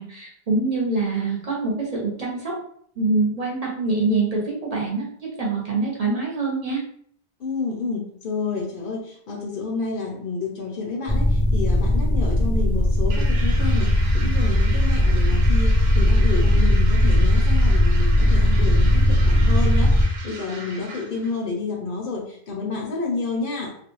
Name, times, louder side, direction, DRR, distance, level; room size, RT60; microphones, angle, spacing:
voice 1, 0.0-2.5 3.0-6.8, right 3 dB, 45° right, -3 dB, 0.7 m, -25 dB
voice 2, 7.4-23.8, left 4 dB, 65° left, 1 dB, 0.7 m, -30 dB
sound 1, 11.1-20.0, left 1 dB, 25° left, 0.5 m, -18 dB
sound 2, 13.1-21.4, right 3 dB, 80° right, 0.9 m, -38 dB
2.4 x 2.2 x 2.9 m, 0.63 s
omnidirectional pair, 1.0 m